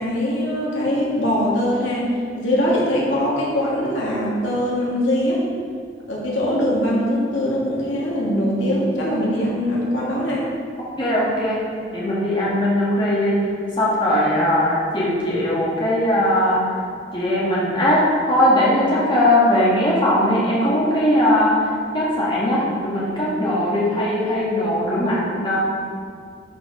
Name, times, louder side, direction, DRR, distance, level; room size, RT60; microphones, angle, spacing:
voice 1, 0.0-2.1 2.4-5.4 6.1-10.5, equal, 90° left, -6 dB, 2.6 m, -22 dB
voice 2, 11.0-11.6 11.9-13.4 13.8-16.6 17.1-21.6 21.9-25.6, left 1 dB, 25° left, -7 dB, 1.8 m, -19 dB
11.5 x 5.0 x 5.0 m, 2.2 s
head